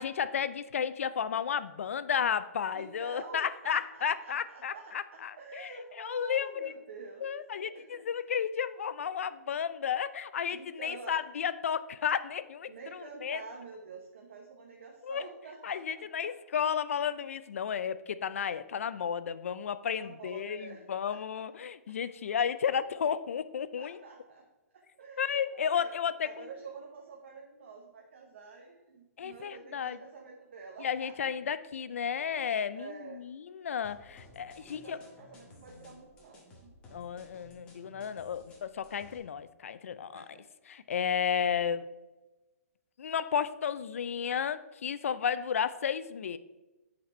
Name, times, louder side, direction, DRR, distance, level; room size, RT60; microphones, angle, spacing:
voice 1, 0.0-6.7 7.2-13.4 15.0-15.2 15.6-24.0 25.2-26.5 29.2-30.0 30.8-35.0 36.9-40.4 40.7-41.9 43.0-46.4, left 7 dB, 60° left, 15 dB, 0.4 m, -33 dB
voice 2, 2.7-7.4 7.7-8.0 10.5-11.2 12.7-16.3 19.8-21.4 23.8-24.4 24.7-25.9 26.2-31.3 32.7-33.2 34.6-36.7 40.1-40.4 45.3-45.6, right 4 dB, 50° right, 0 dB, 0.9 m, -48 dB
sound 1, 33.8-39.2, left 2 dB, 10° left, 0.8 m, -56 dB
7.7 x 4.1 x 4.4 m, 1.1 s
hypercardioid pair, 175°, 8 cm